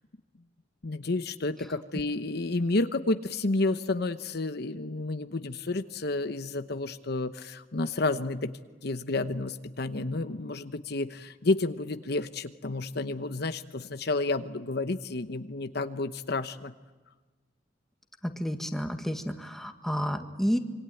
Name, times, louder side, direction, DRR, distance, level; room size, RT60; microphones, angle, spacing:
voice 1, 0.8-8.5 8.8-16.7, left 2 dB, 60° left, 9 dB, 1.0 m, -30 dB
voice 2, 18.2-20.6, equal, ahead, 5 dB, 1.8 m, -30 dB
26.5 x 24.5 x 9.2 m, 1.3 s
head